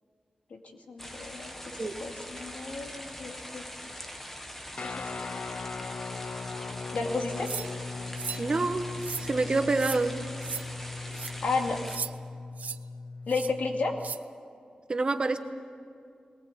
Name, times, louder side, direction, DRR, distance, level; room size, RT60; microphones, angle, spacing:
voice 1, 0.9-1.5 2.0-3.6 4.8-5.1 6.9-7.5 11.4-11.8 13.3-14.0, left 3 dB, 90° left, 2 dB, 2.3 m, -32 dB
sound 1, 1.0-12.0, equal, 10° left, 1.5 m, -43 dB
Guitar, 4.8-14.1, left 4 dB, 55° left, 0.6 m, -39 dB
sound 2, 7.5-7.7 8.2-8.4 9.0-9.3 9.8-10.0 10.4-10.6 11.1-11.3 11.9-12.1 12.6-12.8 13.3-13.5 14.0-14.2, right 6 dB, 80° right, 0.5 m, -36 dB
voice 2, 8.4-8.9 9.2-10.1 14.9-15.4, right 3 dB, 40° right, 8 dB, 1.1 m, -26 dB
21.0 x 19.0 x 8.3 m, 2.4 s
wide cardioid pair, 145°, 3 cm